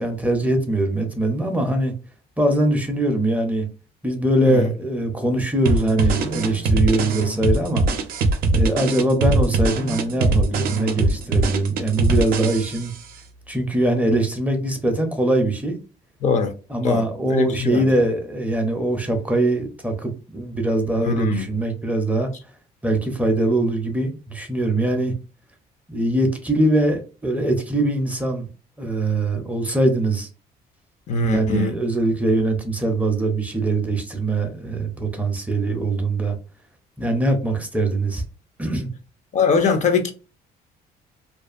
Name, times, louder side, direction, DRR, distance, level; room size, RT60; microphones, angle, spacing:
voice 1, 0.0-1.9 2.4-3.7 4.0-7.8 8.5-12.9 13.5-15.8 16.7-22.3 22.8-25.1 25.9-28.5 28.8-30.3 31.3-36.4 37.0-38.2 38.6-38.9, right 1 dB, 10° right, 0.5 m, -22 dB
sound 1, 5.7-13.0, right 2 dB, 60° right, 0.5 m, -21 dB
voice 2, 16.2-16.5 16.8-17.0 17.3-17.9 21.0-21.5 31.1-31.7 39.3-40.1, left 4 dB, 45° left, 0.5 m, -21 dB
2.4 x 2.3 x 2.3 m
cardioid pair, 110°, 17 cm